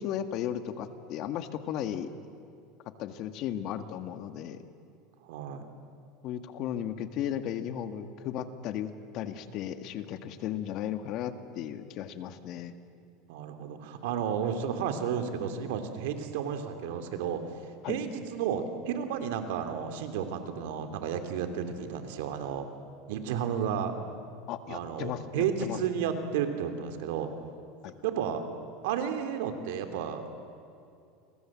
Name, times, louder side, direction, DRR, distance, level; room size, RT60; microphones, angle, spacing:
voice 1, 0.0-2.1 3.0-4.6 6.2-12.7 17.8-18.0 24.5-25.2 25.6-25.8 27.8-27.9, left 10 dB, 50° left, 9 dB, 1.8 m, -35 dB
voice 2, 5.2-5.6 13.3-17.4 17.9-22.7 23.1-23.9 24.7-27.3 28.0-28.4 28.8-30.2, right 8 dB, 80° right, 7 dB, 3.1 m, -32 dB
29.5 x 23.5 x 7.6 m, 2.6 s
supercardioid pair, 130°, 0 cm